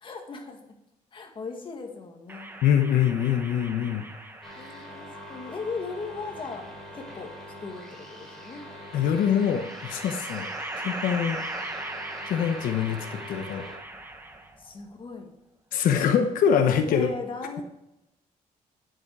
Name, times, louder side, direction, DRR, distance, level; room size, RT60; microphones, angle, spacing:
voice 1, 0.0-0.6 1.1-2.5 4.6-7.3 7.6-8.7 14.6-15.3 16.9-17.6, left 4 dB, 35° left, 3 dB, 1.9 m, -38 dB
sound 1, 2.3-4.9 6.1-7.1 8.7-14.7, right 2 dB, 15° right, 1.3 m, -39 dB
voice 2, 2.6-4.1 8.9-10.5 10.8-11.4 12.3-13.7 15.7-17.1, left 8 dB, 90° left, 6 dB, 1.0 m, -24 dB
sound 2, 4.4-13.8, equal, 5° left, 3.1 m, -44 dB
10.0 x 7.8 x 4.7 m, 0.88 s
cardioid pair, 135°, 14 cm